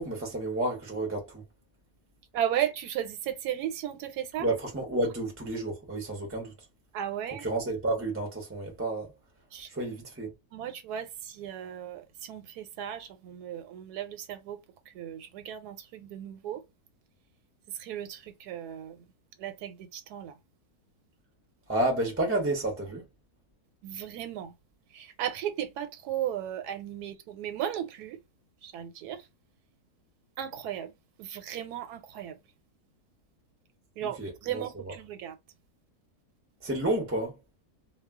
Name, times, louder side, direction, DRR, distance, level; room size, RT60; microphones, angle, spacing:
voice 1, 0.0-1.4 4.4-6.5 7.3-9.1 9.7-10.3 21.7-23.0 34.0-34.9 36.6-37.4, right 2 dB, 15° right, 0.4 m, -31 dB
voice 2, 2.3-4.5 6.9-7.5 9.5-9.7 10.5-14.6 14.9-16.6 17.8-19.0 19.4-20.3 23.8-24.5 24.9-28.2 28.6-29.2 30.4-30.9 31.2-32.4 34.0-35.4, right 10 dB, 90° right, 1.1 m, -35 dB
2.3 x 2.2 x 3.4 m
omnidirectional pair, 1.6 m